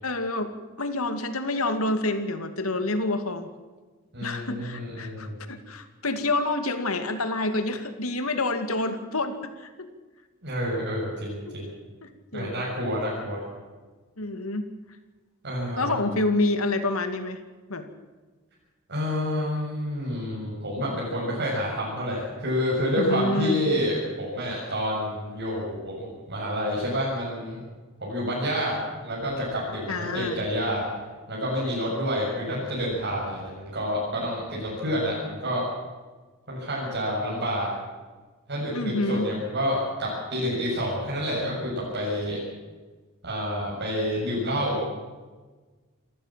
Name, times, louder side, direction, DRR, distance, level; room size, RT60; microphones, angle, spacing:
voice 1, 0.0-0.5 0.8-3.5 4.2-9.9 11.5-11.6 12.0-12.6 12.9-13.0 14.2-14.7 15.8-17.4 17.7-17.9 23.0-23.6 29.9-30.5 38.7-39.3, left 2 dB, 90° left, 8 dB, 2.4 m, -28 dB
voice 2, 4.1-5.4 10.4-11.7 12.3-13.4 15.4-16.0 18.9-27.6 28.0-30.8 31.3-35.6 36.5-37.7 38.5-42.4 43.2-44.8, equal, 55° right, -6 dB, 7.3 m, -28 dB
28.0 x 14.5 x 7.6 m, 1.3 s
head